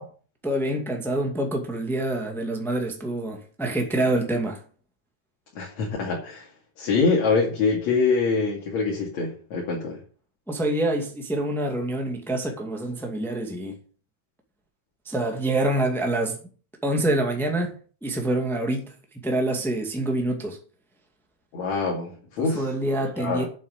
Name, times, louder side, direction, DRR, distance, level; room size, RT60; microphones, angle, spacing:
voice 1, 0.4-4.6 10.5-13.8 15.1-16.4 16.8-17.7 18.0-18.9 19.2-20.6 22.4-23.4, right 1 dB, ahead, 1.8 m, -26 dB
voice 2, 5.6-6.5 6.8-10.0 21.5-22.7 23.2-23.5, left 4 dB, 70° left, 3.6 m, -24 dB
8.5 x 7.6 x 8.2 m
omnidirectional pair, 3.3 m